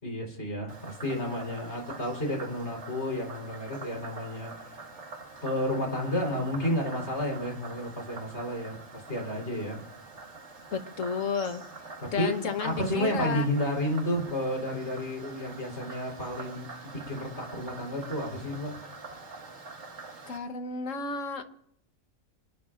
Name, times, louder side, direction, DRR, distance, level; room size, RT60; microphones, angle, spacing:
voice 1, 0.0-5.0 5.4-9.8 12.0-12.3 12.6-18.7, equal, 55° left, 0 dB, 4.4 m, -31 dB
Frog, 0.7-20.4, right 3 dB, 55° right, 2.2 m, -45 dB
voice 2, 10.7-11.6 12.1-13.5 20.3-21.4, left 5 dB, 70° left, 7 dB, 1.5 m, -32 dB
26.5 x 19.5 x 2.6 m, 0.71 s
omnidirectional pair, 1.4 m